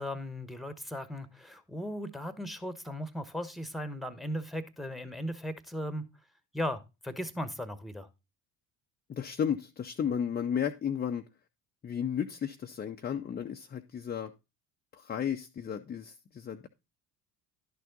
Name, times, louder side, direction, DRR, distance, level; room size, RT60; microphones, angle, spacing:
voice 1, 0.0-6.1 6.5-8.1, equal, ahead, 1.1 m, -37 dB
voice 2, 9.1-11.2 11.8-14.3 14.9-16.7, left 8 dB, 20° left, 0.7 m, -33 dB
11.5 x 6.7 x 3.9 m
figure-of-eight pair, 60°, 49 cm